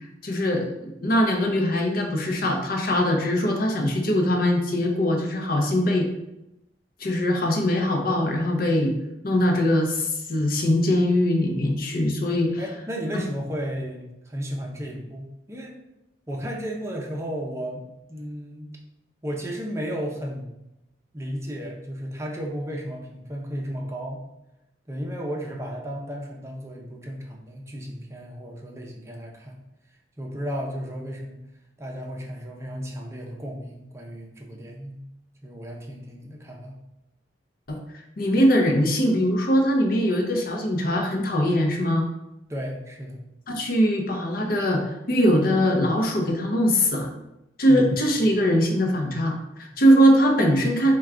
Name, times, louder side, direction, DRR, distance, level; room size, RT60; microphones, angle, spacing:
voice 1, 0.2-6.1 7.0-8.9 9.2-12.6 37.7-37.8 38.2-42.1 43.5-47.1 47.6-50.9, equal, 55° left, 2 dB, 0.6 m, -21 dB
voice 2, 12.6-15.8 16.3-17.8 18.1-18.7 19.2-20.6 21.1-24.2 24.9-29.6 30.2-31.4 31.8-35.1 35.4-36.8 42.5-43.2 47.7-47.9 49.7-49.8, equal, 15° right, 0 dB, 0.6 m, -34 dB
4.5 x 2.3 x 3.6 m, 0.89 s
head